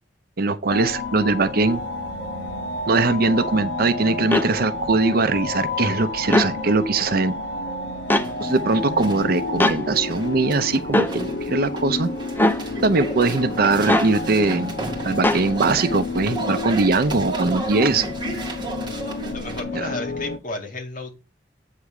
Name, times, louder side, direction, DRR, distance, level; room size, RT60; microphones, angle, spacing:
voice 1, 0.4-1.8 2.9-7.3 8.4-12.1 12.8-14.7 15.0-18.0 19.7-19.9, right 3 dB, 55° right, 0.6 m, -21 dB
sound 1, 0.7-20.4, left 3 dB, 85° left, 0.9 m, -30 dB
sound 2, 0.8-1.0 1.4-3.0 3.3-4.0 4.4-6.2 6.6-7.2 7.7-19.6, right 3 dB, 25° right, 1.9 m, -35 dB
sound 3, 4.3-4.5 6.2-6.5 8.1-8.3 9.6-9.8 10.9-11.1 12.4-12.6 13.9-14.1 15.2-15.4, left 1 dB, 10° left, 0.6 m, -19 dB
voice 2, 19.3-21.1, left 2 dB, 50° left, 2.1 m, -32 dB
8.2 x 3.6 x 6.5 m
head